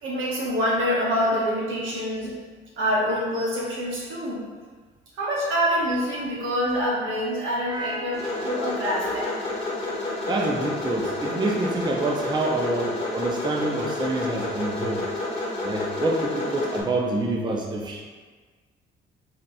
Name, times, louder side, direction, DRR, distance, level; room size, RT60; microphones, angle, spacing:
voice 1, 0.0-2.3 2.8-4.4 5.2-9.3, equal, 80° right, -5 dB, 1.2 m, -26 dB
voice 2, 7.7-8.1 10.3-15.0 15.6-18.0, right 2 dB, 20° right, -1 dB, 0.5 m, -27 dB
sound 1, 8.1-16.8, left 2 dB, 30° left, 1.1 m, -30 dB
4.1 x 3.9 x 2.3 m, 1.4 s
cardioid pair, 90°, 20 cm